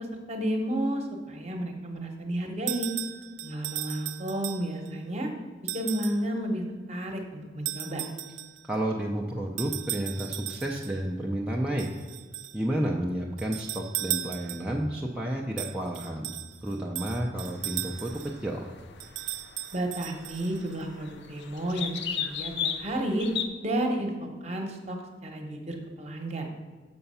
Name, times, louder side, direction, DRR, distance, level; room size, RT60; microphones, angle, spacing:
voice 1, 0.3-2.9 3.4-5.3 5.7-6.6 6.9-8.0 19.7-23.3 23.6-25.0 25.2-26.5, right 1 dB, 35° right, 3 dB, 1.0 m, -31 dB
sound 1, 2.7-4.9 5.7-6.3 7.7-8.7 9.6-11.0 11.8-12.6 13.4-14.8 15.6-18.4 19.0-20.8, right 14 dB, 90° right, 0.4 m, -36 dB
voice 2, 8.7-11.9 12.5-16.3 16.6-18.1 18.4-18.7, right 1 dB, 5° right, -2 dB, 0.5 m, -31 dB
sound 2, 17.4-23.5, left 8 dB, 70° left, 0.6 m, -37 dB
6.8 x 5.7 x 5.5 m, 1.4 s
head